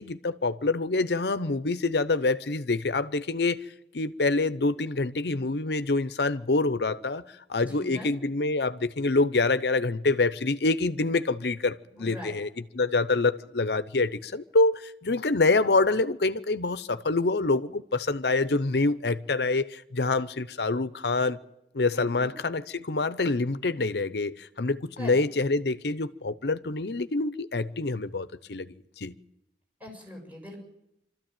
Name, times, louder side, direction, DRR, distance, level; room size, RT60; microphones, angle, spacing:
voice 1, 0.0-3.6 3.9-7.2 7.5-12.5 12.7-21.4 21.7-29.1, left 3 dB, 70° left, 0.8 m, -26 dB
voice 2, 7.6-8.1 12.0-12.3 21.9-22.3 25.0-25.2 29.8-30.6, left 1 dB, 10° right, 6.8 m, -42 dB
25.5 x 13.5 x 9.0 m
head